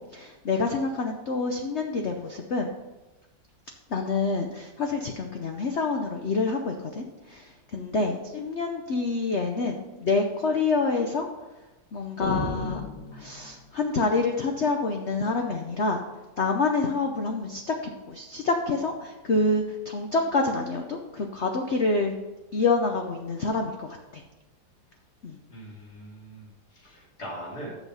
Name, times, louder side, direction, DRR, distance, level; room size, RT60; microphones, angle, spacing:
voice 1, 0.0-2.7 3.9-11.3 11.9-12.8 13.1-16.0 16.4-17.7 18.1-22.1 22.5-24.2 25.2-25.4, left 3 dB, 70° left, 3 dB, 0.6 m, -27 dB
sound 1, 12.2-13.8, left 2 dB, 25° left, 1.3 m, -33 dB
voice 2, 25.5-27.8, right 1 dB, 50° left, -5 dB, 3.3 m, -41 dB
7.1 x 6.3 x 5.5 m, 1.1 s
omnidirectional pair, 2.1 m